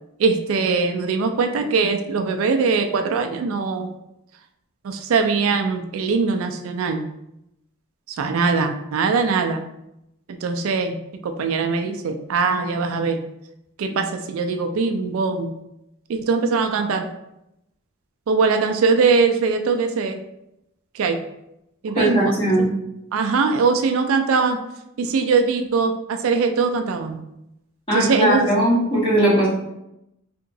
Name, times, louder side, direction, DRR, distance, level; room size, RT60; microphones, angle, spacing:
voice 1, 0.2-3.9 4.8-7.1 8.2-9.6 10.4-11.0 11.2-13.2 13.8-15.6 16.1-17.1 18.3-20.2 20.9-21.2 21.8-22.3 22.6-22.7 23.1-24.6 25.0-27.2 27.9-28.5, right 4 dB, 70° right, 6 dB, 0.3 m, -21 dB
voice 2, 22.0-22.7 27.9-29.5, right 1 dB, 25° left, -9 dB, 1.5 m, -19 dB
3.5 x 2.9 x 2.6 m, 0.85 s
head